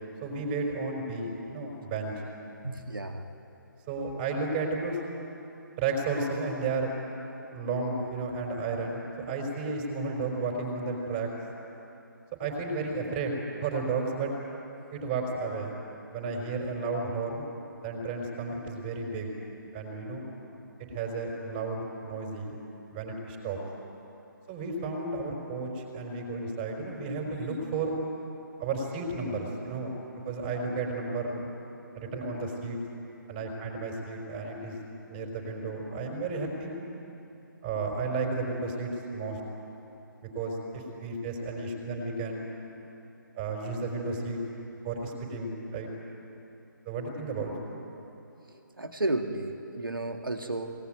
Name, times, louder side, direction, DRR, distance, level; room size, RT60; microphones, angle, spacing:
voice 1, 0.2-2.2 3.9-5.0 5.8-6.9 7.5-11.3 12.4-13.3 13.6-14.3 14.9-15.8 16.1-17.4 17.8-19.3 19.7-20.3 20.9-22.5 22.9-23.6 24.5-27.9 28.6-30.0 30.2-31.5 31.9-32.8 33.3-34.8 35.1-36.7 37.6-39.4 40.2-42.4 43.3-44.4 44.8-45.9 46.8-47.5, right 3 dB, 25° right, 0 dB, 4.8 m, -33 dB
voice 2, 2.6-3.2 48.5-50.7, right 2 dB, 85° right, 4 dB, 2.0 m, -33 dB
22.0 x 19.0 x 9.3 m, 2.9 s
figure-of-eight pair, 145°, 11 cm